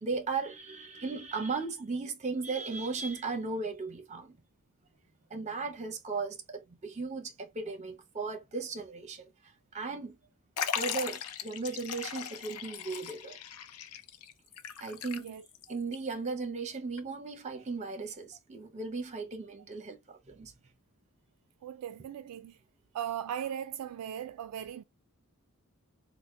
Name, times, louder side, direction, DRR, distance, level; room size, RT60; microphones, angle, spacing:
voice 1, 0.0-4.4 5.3-9.3 9.7-10.1 10.7-13.4 14.8-15.4 15.7-20.5, right 4 dB, 30° right, 0.7 m, -36 dB
Liquid, 10.6-15.6 15.9-16.0 17.0-17.1, left 8 dB, 75° left, 0.4 m, -38 dB
voice 2, 21.6-22.6 22.9-24.8, right 9 dB, 90° right, 0.3 m, -38 dB
4.1 x 2.1 x 3.1 m
head